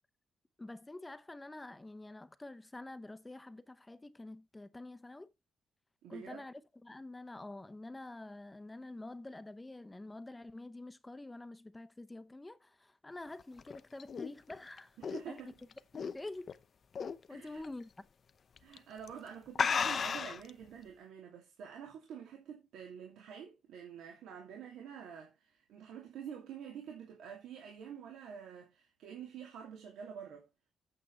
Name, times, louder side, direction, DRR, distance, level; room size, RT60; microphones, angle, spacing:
voice 1, 0.6-5.3 6.1-15.0 15.3-15.5 15.9-16.5 17.3-17.9, left 2 dB, 15° left, 0.8 m, -47 dB
voice 2, 6.0-6.4 15.0-15.6 17.3-17.6 18.6-30.5, right 8 dB, 85° right, 2.7 m, -48 dB
sound 1, 13.4-16.5 16.9-17.3 17.6-17.7 18.6-18.8 19.1-19.2 19.5-20.5, left 6 dB, 45° left, 0.7 m, -34 dB
8.7 x 7.9 x 4.4 m
cardioid pair, 100°, 0 cm